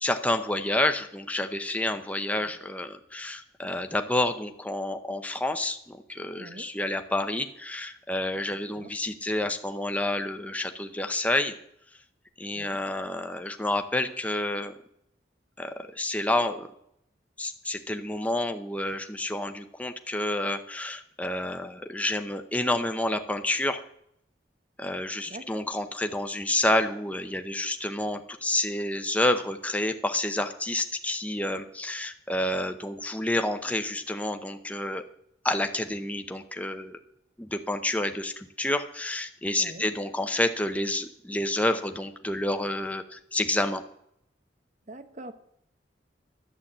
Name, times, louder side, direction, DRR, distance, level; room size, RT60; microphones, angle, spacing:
voice 1, 0.0-11.5 12.4-14.7 15.6-16.7 17.4-23.8 24.8-35.0 35.4-37.0 37.4-43.8, left 1 dB, 10° left, 7 dB, 0.7 m, -29 dB
voice 2, 6.4-6.7 8.8-8.9 12.5-12.8 25.3-25.7 39.6-39.9 44.9-45.3, right 2 dB, 40° right, 11 dB, 0.9 m, -44 dB
11.5 x 8.2 x 7.3 m, 0.73 s
head